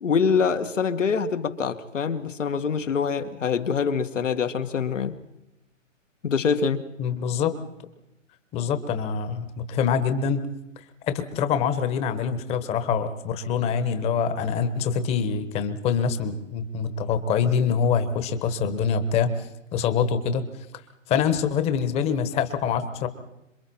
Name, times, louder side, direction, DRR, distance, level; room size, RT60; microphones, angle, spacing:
voice 1, 0.0-5.2 6.2-6.8, left 6 dB, 70° left, 8 dB, 2.0 m, -25 dB
voice 2, 7.0-7.6 8.5-10.5 11.1-20.4 21.1-23.1, left 6 dB, 15° left, 10 dB, 1.3 m, -25 dB
27.0 x 23.0 x 4.4 m, 0.91 s
hypercardioid pair, 140°, 38 cm